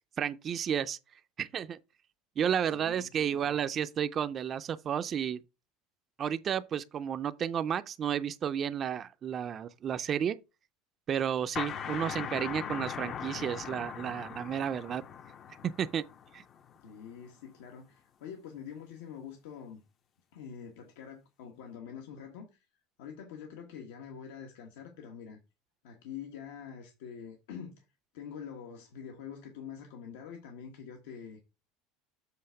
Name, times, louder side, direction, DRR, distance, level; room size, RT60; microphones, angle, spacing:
voice 1, 0.2-1.0 1.4-1.8 2.4-5.4 6.2-10.4 11.1-15.0 15.8-16.0 16.3-16.4, right 8 dB, 30° right, 0.4 m, -32 dB
voice 2, 2.6-3.6 16.8-19.8 20.3-22.7 23.0-25.4 25.8-27.8 28.1-31.4, left 7 dB, 85° left, 1.3 m, -45 dB
sound 1, 11.6-17.0, left 8 dB, 30° left, 0.5 m, -40 dB
7.7 x 3.4 x 5.6 m
cardioid pair, 155°, 0 cm